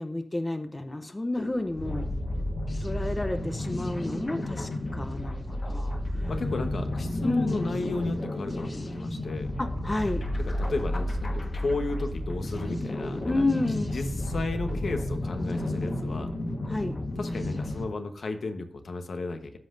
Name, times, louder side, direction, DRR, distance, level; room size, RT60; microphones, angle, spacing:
voice 1, 0.0-2.1 2.8-6.3 7.2-7.6 9.6-10.3 13.2-14.0 16.7-17.0, left 2 dB, 20° left, 8 dB, 0.7 m, -31 dB
sound 1, 1.4-17.9, left 1 dB, 45° left, 1.4 m, -32 dB
voice 2, 6.3-9.5 10.4-13.4 13.9-16.3 17.2-19.6, left 3 dB, 70° left, 6 dB, 1.1 m, -34 dB
13.5 x 5.6 x 2.6 m, 0.64 s
wide cardioid pair, 100°, 0 cm